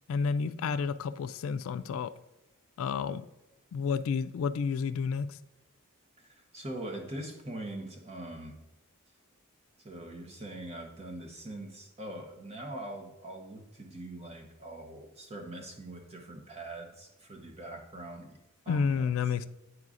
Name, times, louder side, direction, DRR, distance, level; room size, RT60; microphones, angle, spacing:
voice 1, 0.1-2.1 2.8-3.2 3.7-5.4 18.7-19.5, left 5 dB, 70° left, 0.3 m, -30 dB
voice 2, 6.2-8.6 9.8-18.4 18.6-19.1, right 1 dB, 30° right, 1.0 m, -42 dB
9.5 x 4.7 x 2.5 m
head